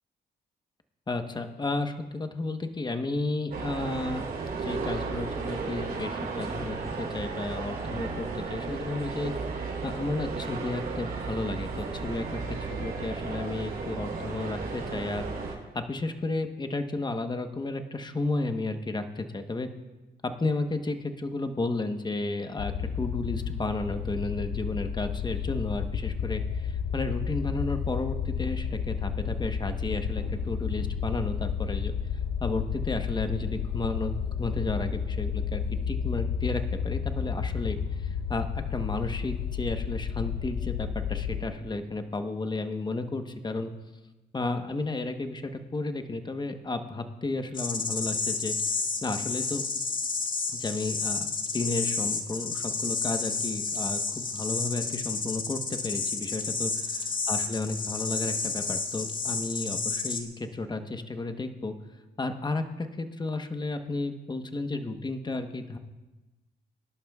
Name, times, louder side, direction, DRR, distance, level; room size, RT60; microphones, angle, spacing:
voice 1, 1.1-4.2 4.6-9.3 9.8-19.7 20.4-31.9 32.4-43.7 44.3-49.6 50.5-56.9 57.3-61.7 62.2-65.8, left 2 dB, 25° left, 7 dB, 1.1 m, -33 dB
sound 1, 3.5-15.5, right 4 dB, 60° right, 3.8 m, -34 dB
sound 2, 22.6-41.4, left 7 dB, 90° left, 0.9 m, -31 dB
sound 3, 47.5-60.2, left 4 dB, 50° left, 1.8 m, -31 dB
23.0 x 11.5 x 2.4 m, 1.1 s
cardioid pair, 80°, 18 cm